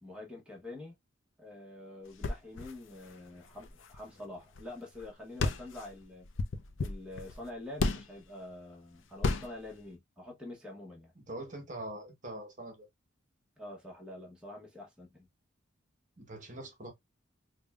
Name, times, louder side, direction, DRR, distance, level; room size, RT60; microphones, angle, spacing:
voice 1, 0.0-1.0 1.4-6.3 6.8-11.1 13.6-15.3, left 2 dB, 5° right, 1.0 m, -46 dB
sound 1, 2.1-4.7 4.9-5.1 5.4-8.2 9.2-9.7, left 3 dB, 80° left, 0.5 m, -34 dB
voice 2, 11.3-12.9 16.2-16.9, right 1 dB, 40° right, 1.1 m, -43 dB
5.1 x 2.2 x 2.4 m
head